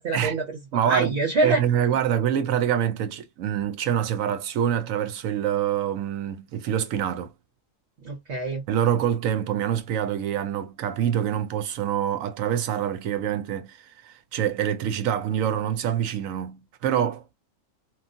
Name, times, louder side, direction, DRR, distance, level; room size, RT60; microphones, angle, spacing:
voice 1, 0.0-1.6 8.0-8.6, right 2 dB, 60° right, 1.3 m, -26 dB
voice 2, 0.7-7.3 8.7-13.8 14.0-17.3, right 9 dB, 85° right, 1.1 m, -26 dB
3.1 x 2.4 x 2.5 m
omnidirectional pair, 1.4 m